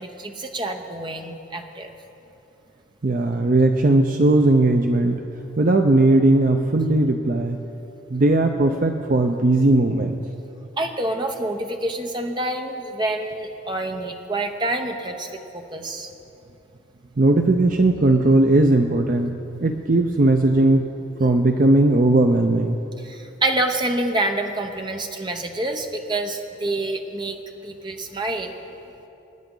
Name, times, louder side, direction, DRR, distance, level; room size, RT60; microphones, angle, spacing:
voice 1, 0.0-1.9 10.8-16.1 23.0-27.4 27.6-28.5, right 2 dB, 25° right, 4 dB, 0.9 m, -27 dB
voice 2, 3.0-5.2 5.6-7.6 8.1-10.1 17.2-20.9 21.2-22.8, right 2 dB, 45° right, 5 dB, 0.5 m, -18 dB
25.0 x 10.0 x 3.9 m, 2.9 s
head